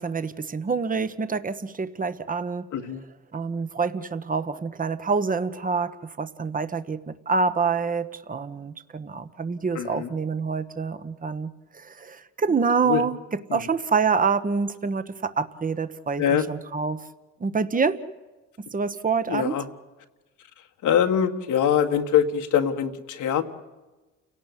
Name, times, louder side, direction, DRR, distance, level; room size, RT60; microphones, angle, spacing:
voice 1, 0.0-2.7 3.3-13.2 13.5-16.2 16.5-17.0 17.4-18.0 18.7-19.6, right 5 dB, 25° right, 12 dB, 1.3 m, -26 dB
voice 2, 2.7-3.0 9.7-10.1 12.8-13.0 13.5-13.6 16.2-16.4 19.3-19.7 20.8-23.4, left 8 dB, 80° left, 6 dB, 2.0 m, -23 dB
29.5 x 18.0 x 8.3 m, 1.2 s
cardioid pair, 90°, 30 cm